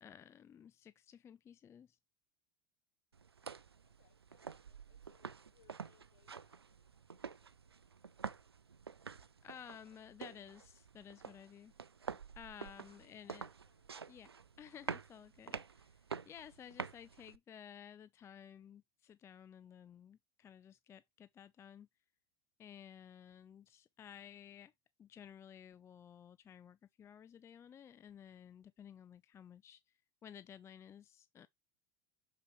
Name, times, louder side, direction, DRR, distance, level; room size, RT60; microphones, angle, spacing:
voice 1, 0.0-2.0 9.4-11.7 12.4-13.5 14.1-14.3 14.6-21.9 22.6-24.7 25.0-31.5, left 8 dB, 20° left, 0.3 m, -55 dB
sound 1, 3.1-17.4, right 6 dB, 85° right, 0.4 m, -48 dB
voice 2, 3.8-8.4 12.8-13.9, left 10 dB, 55° left, 4.7 m, -75 dB
6.8 x 5.3 x 3.1 m
figure-of-eight pair, 75°, 13 cm